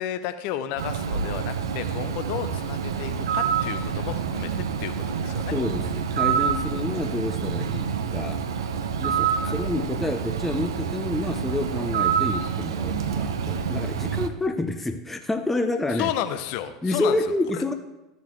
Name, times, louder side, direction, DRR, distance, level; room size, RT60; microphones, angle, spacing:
voice 1, 0.0-4.5 4.8-5.5 9.4-9.5 15.9-17.6, left 11 dB, 55° left, 10 dB, 0.7 m, -32 dB
Bird, 0.8-14.3, right 7 dB, 70° right, 0.7 m, -27 dB
voice 2, 5.5-8.4 9.0-16.1 16.8-17.7, left 2 dB, 10° left, 5 dB, 0.7 m, -28 dB
14.0 x 7.0 x 3.2 m, 0.99 s
figure-of-eight pair, 80°, 2 cm